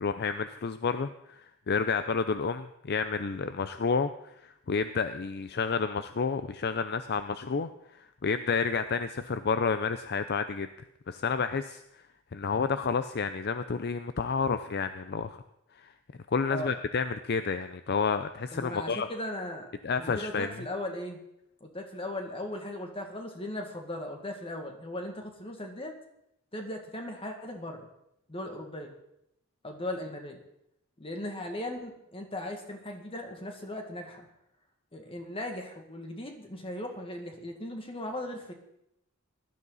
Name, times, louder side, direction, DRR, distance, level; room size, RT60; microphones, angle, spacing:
voice 1, 0.0-4.1 4.4-7.7 8.0-10.7 11.1-12.0 12.3-15.4 15.8-15.9 16.3-19.1 19.8-20.5, left 5 dB, 50° left, 11 dB, 0.5 m, -30 dB
voice 2, 18.5-19.7 20.0-21.2 21.6-26.0 26.5-27.9 28.3-28.9 29.6-30.4 31.0-34.3 34.9-38.5, left 1 dB, 25° left, 3 dB, 2.0 m, -38 dB
17.5 x 12.5 x 4.1 m, 0.80 s
head